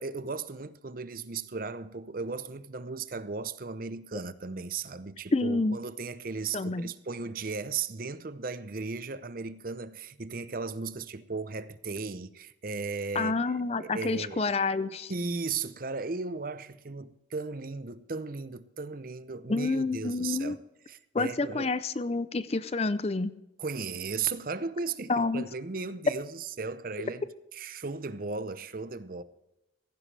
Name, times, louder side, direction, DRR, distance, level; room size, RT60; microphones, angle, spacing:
voice 1, 0.0-14.5 15.1-20.6 20.9-21.7 23.6-29.2, right 4 dB, 50° right, 0.7 m, -36 dB
voice 2, 5.3-5.8 6.5-6.9 13.1-15.1 19.5-20.6 21.1-23.3 25.1-25.4, left 3 dB, 35° left, 0.5 m, -28 dB
16.0 x 15.5 x 3.3 m
head